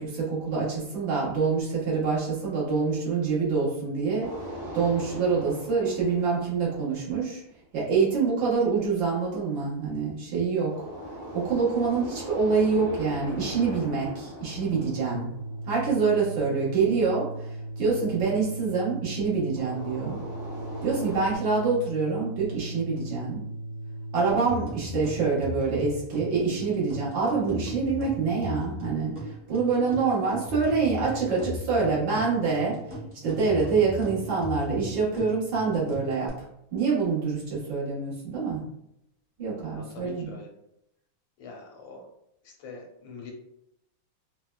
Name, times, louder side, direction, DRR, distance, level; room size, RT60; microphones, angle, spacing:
voice 1, 0.0-4.3 4.7-7.4 7.7-10.7 11.3-15.3 15.7-17.5 17.8-20.2 20.8-23.4 24.1-32.8 33.2-36.3 36.7-38.6 39.4-40.3, right 4 dB, 75° right, -7 dB, 2.0 m, -26 dB
sound 1, 4.2-7.3 10.7-16.1 19.5-21.4, equal, 50° right, 1.1 m, -40 dB
Organ, 14.4-24.7, right 2 dB, 60° left, 0.7 m, -38 dB
sound 2, 24.3-36.3, left 2 dB, 25° right, 0.7 m, -38 dB
voice 2, 39.7-40.5 41.4-42.1 42.4-43.3, left 3 dB, 90° left, 1 dB, 1.5 m, -44 dB
4.3 x 2.2 x 2.2 m, 0.78 s
omnidirectional pair, 2.1 m